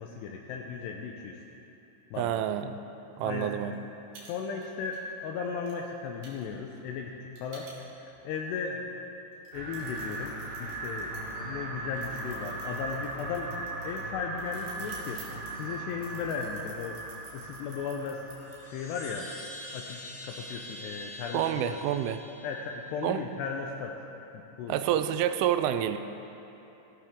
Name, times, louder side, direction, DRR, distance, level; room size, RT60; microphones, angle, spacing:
voice 1, 0.0-1.4 2.1-2.4 3.2-3.6 4.3-9.0 9.5-13.6 13.8-15.2 15.5-18.3 18.6-19.3 19.7-21.4 22.4-24.0 24.3-24.8, left 5 dB, 85° left, 1 dB, 2.5 m, -36 dB
voice 2, 2.2-2.8 3.2-3.8 21.3-22.2 23.0-23.2 24.7-26.0, right 10 dB, 90° right, 10 dB, 3.1 m, -28 dB
sound 1, 3.7-3.8 4.1-4.3 4.6-5.0 5.7-5.8 6.2-8.2 8.7-8.8 9.3-11.3 11.9-18.6, right 5 dB, 70° right, 4.4 m, -51 dB
sound 2, 9.5-19.0, right 2 dB, 55° right, 5.3 m, -39 dB
Chime, 18.4-23.0, left 1 dB, 40° left, 3.1 m, -45 dB
18.0 x 14.5 x 3.7 m, 3.0 s
omnidirectional pair, 5.6 m